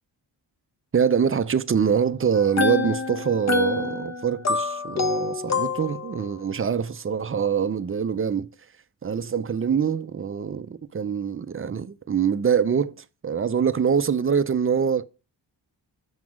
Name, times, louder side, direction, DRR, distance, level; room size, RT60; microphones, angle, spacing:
voice 1, 0.9-8.5 9.0-15.0, right 7 dB, 30° right, 0.5 m, -24 dB
sound 1, 2.3-6.3, left 4 dB, 35° left, 0.8 m, -26 dB
6.0 x 4.8 x 6.1 m
cardioid pair, 65°, 47 cm